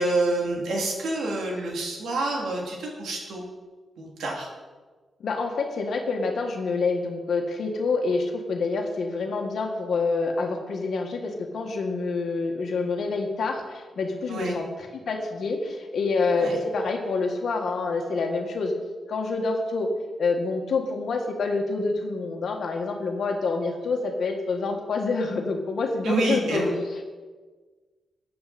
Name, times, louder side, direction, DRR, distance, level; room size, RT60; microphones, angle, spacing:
voice 1, 0.0-3.4 4.0-4.5 14.3-14.6 16.4-16.6 26.0-26.7, right 2 dB, 90° right, -1 dB, 3.1 m, -28 dB
voice 2, 5.2-18.7 19.1-19.9 20.2-27.0, left 3 dB, 70° left, 2 dB, 1.8 m, -27 dB
14.5 x 9.4 x 4.3 m, 1.4 s
cardioid pair, 105°, 0 cm